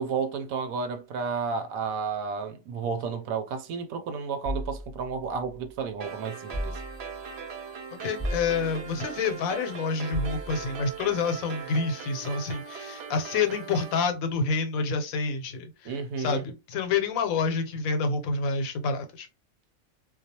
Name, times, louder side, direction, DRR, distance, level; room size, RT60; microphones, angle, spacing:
voice 1, 0.0-6.8 15.8-16.4, right 5 dB, 85° right, 1.0 m, -32 dB
sound 1, 4.4-5.8 6.5-7.4 8.2-9.1 10.1-10.9, equal, 10° left, 1.0 m, -36 dB
sound 2, 6.0-14.0, right 6 dB, 60° right, 0.8 m, -39 dB
voice 2, 8.0-19.3, left 4 dB, 85° left, 1.1 m, -28 dB
2.4 x 2.2 x 2.7 m
omnidirectional pair, 1.4 m